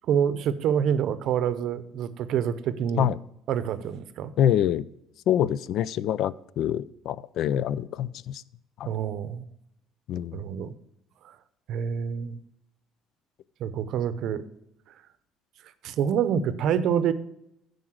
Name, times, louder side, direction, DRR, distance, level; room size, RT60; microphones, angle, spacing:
voice 1, 0.0-3.1 3.5-4.3 8.9-9.4 10.3-10.7 11.2-11.4 11.7-12.4 13.6-14.4 15.8-17.1, right 8 dB, 60° right, 14 dB, 0.7 m, -27 dB
voice 2, 4.4-4.9 5.3-8.4 8.8-8.9 10.1-10.4, left 10 dB, 60° left, 19 dB, 0.4 m, -25 dB
9.6 x 5.2 x 6.3 m, 0.79 s
cardioid pair, 130°, 0 cm